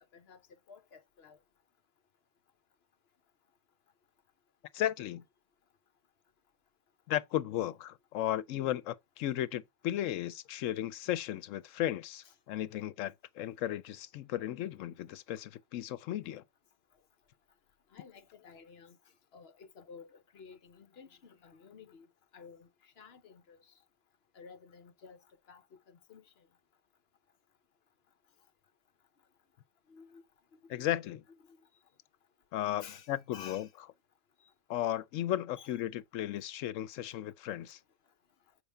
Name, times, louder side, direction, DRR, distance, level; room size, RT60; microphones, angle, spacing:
voice 1, 0.7-1.4 12.2-12.3 17.9-19.0 19.3-22.1 22.3-23.7 24.3-25.2 25.5-26.5 29.9-30.2 30.5-30.8 31.4-31.6 32.8-33.7 34.4-34.5 35.6-35.7, left 6 dB, 60° left, 1.0 m, -53 dB
voice 2, 4.7-5.2 7.1-16.4 30.7-31.2 32.5-33.7 34.7-37.8, left 12 dB, 85° left, 1.0 m, -35 dB
6.7 x 4.9 x 3.3 m
omnidirectional pair, 1.3 m